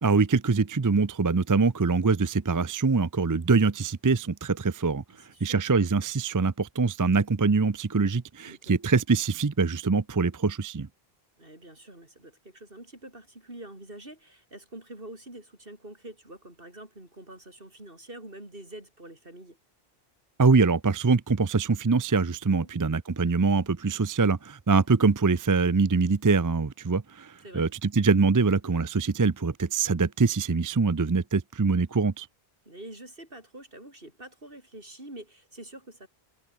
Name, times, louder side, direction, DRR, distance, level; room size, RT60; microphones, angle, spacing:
voice 1, 0.0-5.0 5.4-10.9 20.4-32.3, right 4 dB, 25° right, 0.5 m, -24 dB
voice 2, 5.3-5.6 8.5-8.8 11.4-19.6 27.4-27.7 32.6-36.1, right 1 dB, 60° right, 6.8 m, -46 dB
omnidirectional pair, 1.0 m